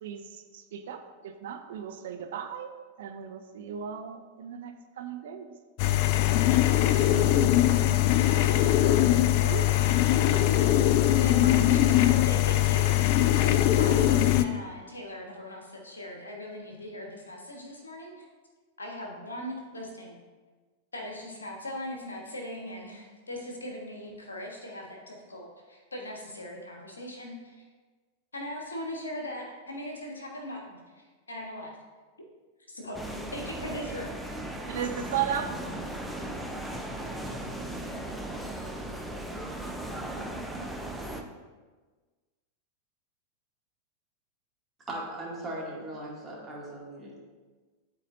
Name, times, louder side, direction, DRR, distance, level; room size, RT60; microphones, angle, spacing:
voice 1, 0.0-2.7 3.0-5.5 9.3-9.7 34.7-35.6 40.0-40.1 40.6-40.7, right 9 dB, 55° right, 6 dB, 0.5 m, -35 dB
sound 1, 5.8-14.4, left 13 dB, 45° left, 0.4 m, -22 dB
voice 2, 7.0-7.4 44.9-47.2, right 1 dB, 20° right, -5 dB, 2.1 m, -38 dB
voice 3, 11.2-13.0 13.3-18.2 18.8-20.2 20.9-27.6 28.3-31.8 32.7-34.1, left 1 dB, 75° left, 1 dB, 1.3 m, -39 dB
sound 2, 32.9-41.2, right 1 dB, 5° left, 0.7 m, -37 dB
11.5 x 4.2 x 2.5 m, 1.4 s
figure-of-eight pair, 90°, 0 cm